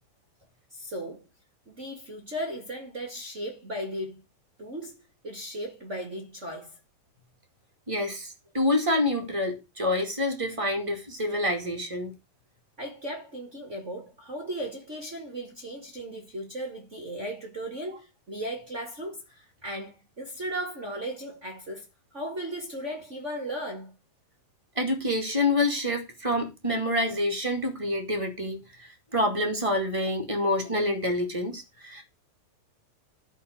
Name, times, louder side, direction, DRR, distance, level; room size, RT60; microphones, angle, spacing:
voice 1, 0.7-1.2 1.7-4.2 4.6-6.8 12.8-21.8 22.1-23.9, right 1 dB, 75° right, 0.6 m, -36 dB
voice 2, 7.9-12.1 24.7-28.6 29.1-32.0, left 1 dB, 25° right, 0.6 m, -27 dB
12.5 x 4.4 x 8.1 m
omnidirectional pair, 4.9 m